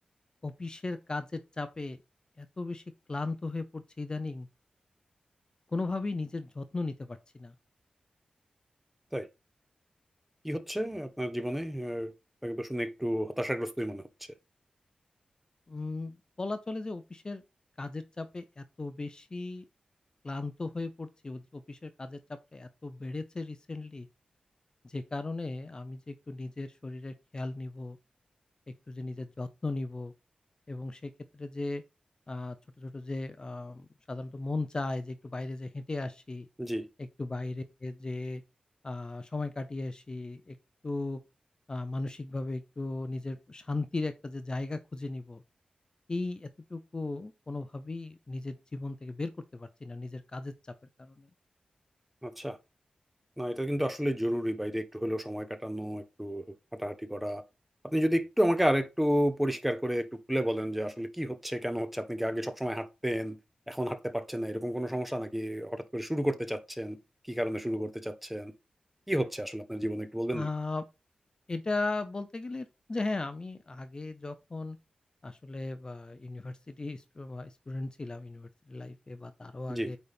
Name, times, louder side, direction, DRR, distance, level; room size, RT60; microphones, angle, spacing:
voice 1, 0.4-2.0 2.4-2.8 3.1-4.5 5.7-7.5 15.7-17.4 17.8-19.6 20.2-22.2 22.5-24.1 24.8-28.0 28.9-30.1 30.7-31.8 32.3-36.5 37.2-38.4 38.8-40.6 40.8-41.2 41.7-45.4 46.1-50.5 51.0-51.3 70.3-70.8 71.5-74.8 75.2-80.0, left 2 dB, 30° left, 0.6 m, -37 dB
voice 2, 10.4-12.1 12.4-14.0 36.6-36.9 52.2-52.6 53.4-56.4 56.8-57.4 57.8-63.4 63.7-67.0 67.3-68.5 69.1-70.5 79.7-79.9, equal, 5° right, 0.9 m, -31 dB
8.6 x 4.1 x 3.5 m
wide cardioid pair, 110°, 3 cm